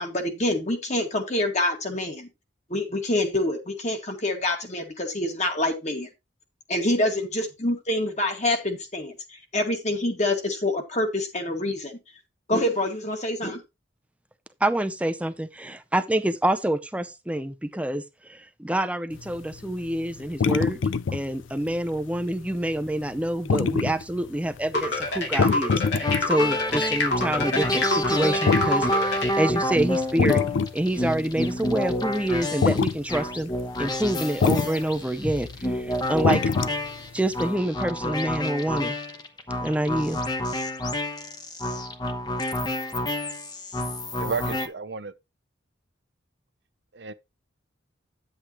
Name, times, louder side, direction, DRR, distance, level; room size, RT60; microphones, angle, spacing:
voice 1, 0.0-2.3 2.7-6.1 6.7-12.0 12.5-13.6, left 1 dB, 35° left, 2.0 m, -26 dB
voice 2, 14.6-20.8 21.1-30.4 30.7-33.5 33.8-36.4 37.1-38.9 39.6-40.2, right 1 dB, 5° right, 0.6 m, -27 dB
sound 1, 19.1-24.7 25.1-29.5 29.8-31.0 31.3-31.6 32.0-32.3 32.6-33.0 33.4-33.6 34.0-34.7 35.0-37.1 37.4-37.5, left 5 dB, 80° left, 0.4 m, -24 dB
sound 2, 24.7-29.3, left 2 dB, 65° left, 2.4 m, -27 dB
sound 3, 26.0-44.7, left 1 dB, 20° left, 1.0 m, -29 dB
voice 3, 44.2-45.0 46.9-47.1, right 5 dB, 60° right, 0.7 m, -31 dB
10.0 x 7.8 x 3.0 m
head